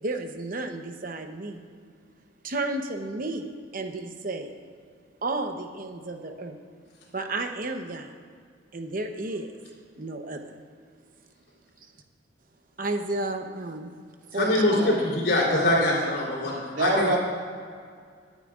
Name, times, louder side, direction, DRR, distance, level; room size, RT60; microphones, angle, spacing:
voice 1, 0.0-1.6 2.4-3.5 3.7-4.6 5.2-6.6 7.1-8.1 8.7-9.5 10.0-10.5 12.8-13.9 14.3-14.8, right 2 dB, 50° right, 5 dB, 0.9 m, -32 dB
voice 2, 14.3-17.2, left 2 dB, 60° left, -9 dB, 3.6 m, -24 dB
voice 3, 15.4-16.1 16.7-17.2, right 2 dB, 90° right, -3 dB, 2.7 m, -26 dB
23.5 x 9.2 x 2.5 m, 2.1 s
head